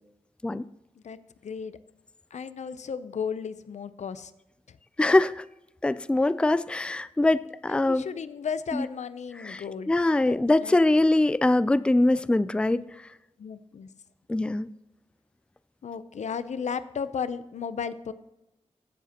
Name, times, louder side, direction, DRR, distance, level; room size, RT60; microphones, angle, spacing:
voice 1, 1.4-1.8 2.3-4.3 4.7-4.8 7.7-9.9 10.2-10.8 13.4-13.9 15.8-18.1, left 6 dB, 85° left, 0.6 m, -34 dB
voice 2, 5.0-5.4 5.8-8.0 8.7-8.8 9.4-12.9 14.3-14.7, left 2 dB, 10° left, 0.3 m, -23 dB
15.5 x 7.3 x 2.9 m
wide cardioid pair, 90°, 12 cm